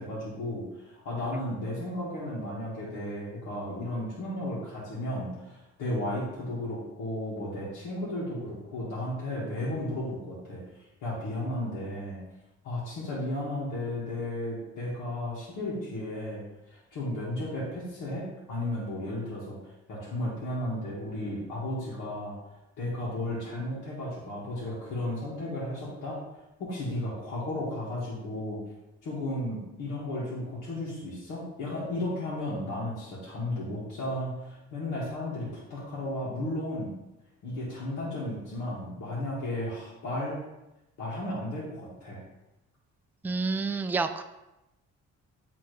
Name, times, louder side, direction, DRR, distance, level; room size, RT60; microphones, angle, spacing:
voice 1, 0.0-10.6 11.0-12.2 12.6-16.4 16.7-19.6 19.9-22.4 22.8-26.2 26.6-28.6 29.0-36.9 37.4-40.4 41.0-42.2, left 1 dB, 85° left, -7 dB, 1.8 m, -34 dB
voice 2, 43.2-44.2, right 4 dB, 5° right, 7 dB, 0.3 m, -29 dB
8.7 x 3.4 x 3.2 m, 0.95 s
cardioid pair, 90°, 30 cm